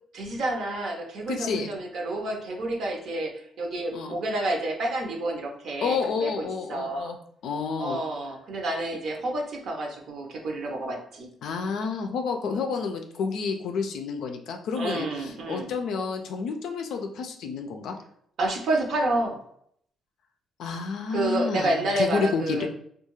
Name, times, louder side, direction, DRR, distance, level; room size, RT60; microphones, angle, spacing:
voice 1, 0.1-7.1 7.8-11.3 14.7-15.7 18.4-19.4 21.1-22.7, right 2 dB, 65° right, 2 dB, 0.7 m, -29 dB
voice 2, 1.3-1.7 3.9-4.2 5.8-7.2 7.4-8.0 11.4-18.0 20.6-22.7, left 5 dB, 80° left, 5 dB, 0.3 m, -30 dB
2.3 x 2.3 x 3.0 m, 0.68 s
cardioid pair, 90°, 0 cm